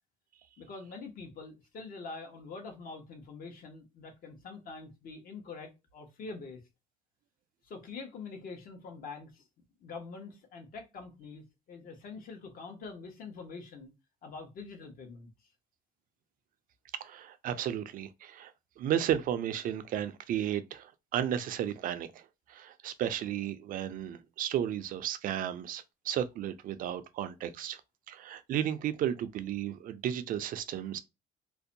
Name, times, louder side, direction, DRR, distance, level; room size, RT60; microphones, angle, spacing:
voice 1, 0.6-6.6 7.6-9.4 9.8-13.9 14.2-15.3, left 4 dB, 55° left, 0.9 m, -45 dB
voice 2, 16.9-27.8 28.1-31.0, right 10 dB, 55° right, 0.4 m, -34 dB
2.5 x 2.1 x 2.6 m
cardioid pair, 110°, 17 cm